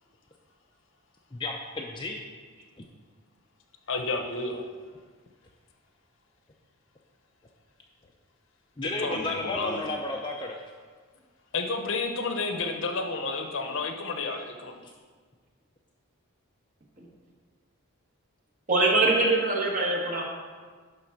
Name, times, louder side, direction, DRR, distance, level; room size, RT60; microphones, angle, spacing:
voice 1, 1.3-2.2 2.8-2.9 8.8-10.6, left 2 dB, 20° left, 0 dB, 0.5 m, -32 dB
voice 2, 3.9-4.7 8.8-9.8 11.5-14.8, left 3 dB, 60° left, 4 dB, 0.8 m, -31 dB
voice 3, 18.7-20.2, right 2 dB, 35° right, -1 dB, 1.4 m, -23 dB
11.0 x 3.8 x 5.9 m, 1.5 s
head